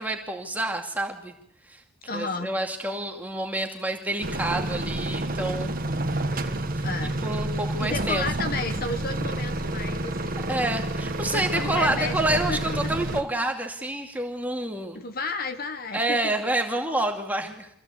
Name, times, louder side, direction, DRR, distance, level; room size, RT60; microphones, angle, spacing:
voice 1, 0.0-1.3 1.7-1.8 2.1-5.8 6.3-6.6 7.2-8.5 10.5-15.1 15.9-17.7, right 1 dB, 10° right, 3 dB, 2.4 m, -28 dB
voice 2, 2.1-2.5 6.8-7.3 7.8-10.6 11.3-12.8 14.9-16.3, left 3 dB, 45° left, 8 dB, 1.3 m, -32 dB
sound 1, 4.2-13.2, right 1 dB, 45° right, 1.7 m, -29 dB
26.0 x 16.0 x 8.4 m, 0.75 s
head